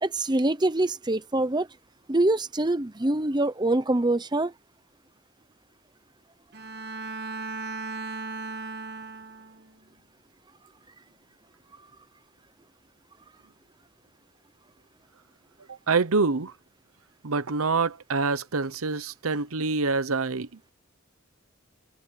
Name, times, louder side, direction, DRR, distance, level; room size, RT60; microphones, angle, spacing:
voice 1, 0.0-1.7 2.1-4.5, right 2 dB, 20° right, 0.9 m, -24 dB
Bowed string instrument, 6.5-9.7, right 3 dB, 50° right, 2.2 m, -36 dB
voice 2, 15.7-16.5 17.2-20.5, right 4 dB, 85° right, 0.9 m, -26 dB
head